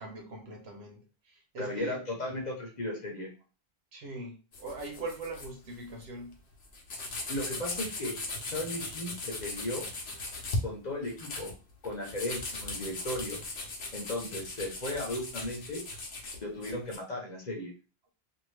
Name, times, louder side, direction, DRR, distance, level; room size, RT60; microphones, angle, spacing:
voice 1, 0.0-2.0 3.9-6.4, right 2 dB, 90° right, 1 dB, 1.1 m, -41 dB
voice 2, 1.6-3.3 7.3-8.2 8.4-9.9 10.6-11.5 11.8-13.4 13.9-15.8 16.4-17.7, left 1 dB, 45° left, 0 dB, 0.9 m, -36 dB
sound 1, 4.5-5.5 5.8-6.0 6.3-6.4 6.6-10.6 11.0-17.0, left 2 dB, 85° left, 1.0 m, -38 dB
2.6 x 2.5 x 3.1 m, 0.34 s
omnidirectional pair, 1.0 m